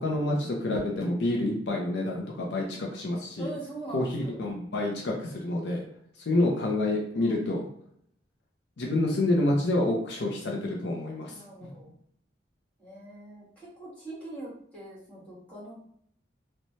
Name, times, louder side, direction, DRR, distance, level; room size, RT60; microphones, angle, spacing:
voice 1, 0.0-3.5 3.9-5.8 6.3-7.7 8.8-11.3, left 1 dB, 65° left, -1 dB, 0.5 m, -28 dB
voice 2, 3.4-4.4 7.2-7.4 11.3-11.9 12.8-15.9, right 2 dB, 10° left, -8 dB, 1.2 m, -43 dB
3.0 x 2.1 x 2.6 m, 0.66 s
head